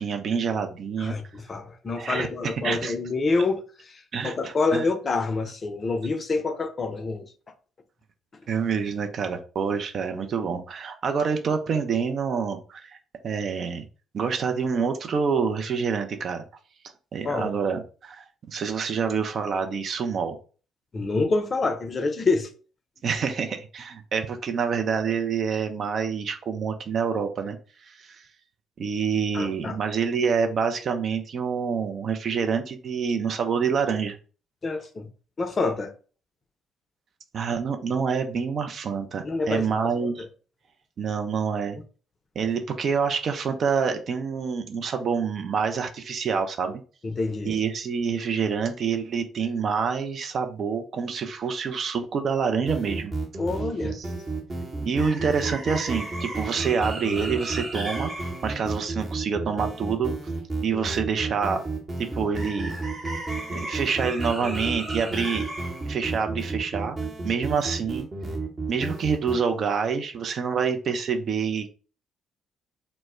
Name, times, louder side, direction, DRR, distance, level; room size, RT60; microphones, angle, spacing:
voice 1, 0.0-1.2 2.0-2.9 4.1-4.9 8.5-13.0 13.2-13.9 14.1-16.4 17.1-20.4 23.0-27.6 27.8-28.2 28.8-34.2 37.3-40.2 41.0-41.8 42.4-46.8 47.4-53.1 53.9-54.1 54.8-58.1 58.4-60.1 60.6-61.6 62.0-62.7 63.5-65.5 65.9-67.0 67.2-68.1 68.7-71.7, right 6 dB, 55° right, 0.4 m, -27 dB
voice 2, 1.0-3.6 3.9-7.3 17.2-17.5 20.9-22.5 29.3-29.8 34.6-35.1 35.4-35.9 39.2-40.1 47.0-47.5 53.4-54.0, left 3 dB, 40° left, 0.5 m, -27 dB
sound 1, 52.7-69.4, right 3 dB, 30° right, 0.8 m, -31 dB
2.1 x 2.1 x 3.4 m
hypercardioid pair, 45°, 0 cm